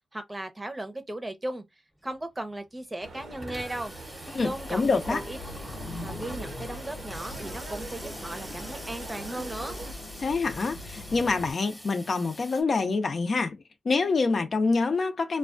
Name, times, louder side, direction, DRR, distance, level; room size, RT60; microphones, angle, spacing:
voice 1, 0.1-1.6 2.0-3.9 4.4-5.4 6.0-9.8, right 1 dB, 20° right, 0.7 m, -36 dB
Water tap faucet / Sink (filling or washing), 2.0-2.1 2.4-2.5 2.7-12.6, equal, 10° left, 0.9 m, -45 dB
sound 1, 3.0-9.9, right 3 dB, 75° right, 0.7 m, -43 dB
voice 2, 4.3-5.2 10.2-13.6 13.8-15.4, left 4 dB, 60° left, 0.6 m, -26 dB
sound 2, 4.5-11.5, left 2 dB, 85° left, 0.8 m, -42 dB
2.3 x 2.2 x 2.5 m
cardioid pair, 65°, 0 cm